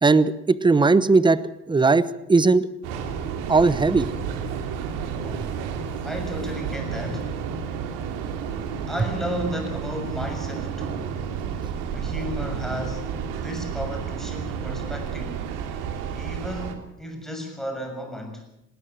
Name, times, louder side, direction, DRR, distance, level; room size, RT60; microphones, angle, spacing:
voice 1, 0.0-2.7 3.5-4.1, right 3 dB, 15° right, 16 dB, 1.0 m, -18 dB
Train, 2.8-16.8, right 7 dB, 90° right, 3.0 m, -31 dB
voice 2, 5.2-5.6 6.0-7.3 8.9-11.1 11.9-13.1 13.4-15.5 16.1-18.4, equal, ahead, 3 dB, 6.6 m, -34 dB
19.0 x 19.0 x 7.8 m, 0.83 s
cardioid pair, 115°, 31 cm